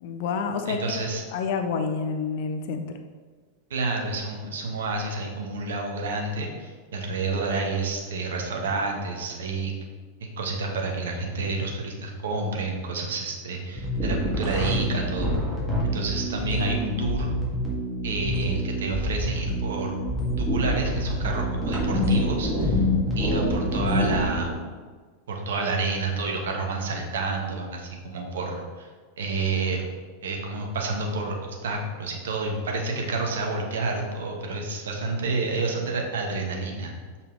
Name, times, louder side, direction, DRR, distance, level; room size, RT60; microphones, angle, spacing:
voice 1, 0.0-1.0 1.3-2.9, left 5 dB, 50° left, 6 dB, 0.6 m, -28 dB
voice 2, 0.7-1.2 3.7-9.7 10.2-15.3 15.9-17.3 18.0-20.0 20.4-22.8 23.2-24.6 25.3-28.9 29.2-29.8 30.2-37.0, right 3 dB, 60° right, 2 dB, 1.1 m, -29 dB
sound 1, 13.8-24.4, equal, 5° left, 2.0 m, -26 dB
6.8 x 5.4 x 3.2 m, 1.5 s
figure-of-eight pair, 90°, 0 cm